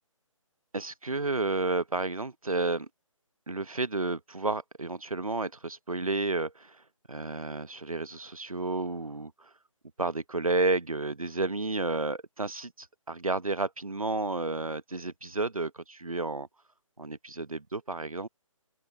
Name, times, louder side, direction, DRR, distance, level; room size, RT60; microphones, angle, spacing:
voice 1, 0.7-2.9 3.5-6.8 7.1-9.5 10.0-16.5 17.0-18.3, right 3 dB, 90° right, 1.1 m, -31 dB
figure-of-eight pair, 145°, 18 cm